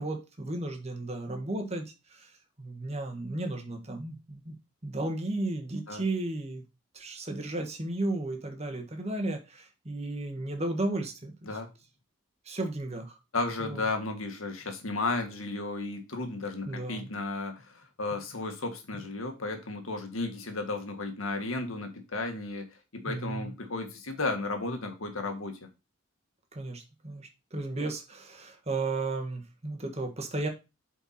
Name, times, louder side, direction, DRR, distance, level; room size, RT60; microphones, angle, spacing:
voice 1, 0.0-4.5 4.8-6.6 6.9-11.5 12.4-13.2 13.6-13.8 16.7-17.1 23.0-23.5 26.5-30.5, right 2 dB, 30° right, 1.6 m, -34 dB
voice 2, 13.3-25.7, left 3 dB, 85° left, 1.7 m, -34 dB
8.1 x 4.6 x 4.3 m
head